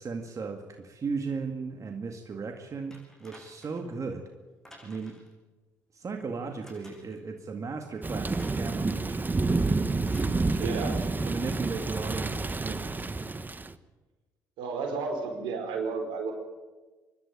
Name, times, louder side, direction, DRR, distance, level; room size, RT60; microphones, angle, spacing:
voice 1, 0.0-4.2 4.8-5.2 5.9-9.3 10.5-13.1, right 4 dB, 40° right, 4 dB, 2.1 m, -36 dB
sound 1, 2.9-3.9 4.6-5.3 6.6-7.2 8.4-8.8 10.0-10.4 11.4-11.5, equal, 5° left, 7.2 m, -53 dB
Thunder / Rain, 8.0-13.7, right 3 dB, 25° right, 1.1 m, -29 dB
voice 2, 10.6-11.0 14.6-16.3, right 4 dB, 75° right, 3 dB, 4.8 m, -32 dB
25.5 x 12.0 x 8.9 m, 1.2 s
hypercardioid pair, 55°, 8 cm